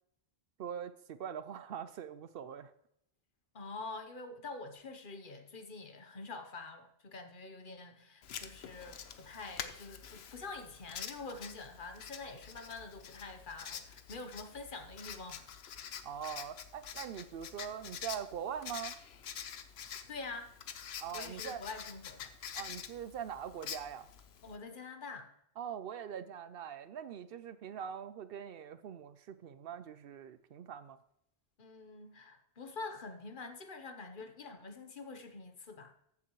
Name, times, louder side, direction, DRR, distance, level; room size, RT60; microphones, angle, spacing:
voice 1, 0.6-2.7 16.0-19.0 21.0-21.6 22.5-24.1 25.6-31.0, right 8 dB, 70° right, 13 dB, 0.7 m, -42 dB
voice 2, 3.5-15.7 20.1-20.5 21.1-22.3 24.4-25.3 31.6-35.9, left 3 dB, 55° left, 7 dB, 1.1 m, -46 dB
Writing, 8.2-24.6, left 8 dB, 80° left, 0.9 m, -47 dB
14.0 x 7.3 x 3.1 m, 0.76 s
omnidirectional pair, 1.1 m